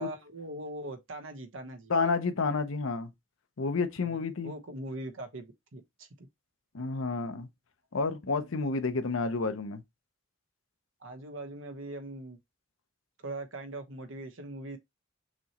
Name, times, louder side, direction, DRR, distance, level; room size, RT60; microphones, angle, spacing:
voice 1, 0.0-1.9 4.0-6.3 11.0-12.4 13.2-14.8, right 1 dB, 75° right, 1.1 m, -41 dB
voice 2, 1.9-3.1 3.6-4.5 6.7-7.5 7.9-9.8, left 4 dB, 85° left, 0.7 m, -30 dB
6.1 x 3.0 x 2.9 m
head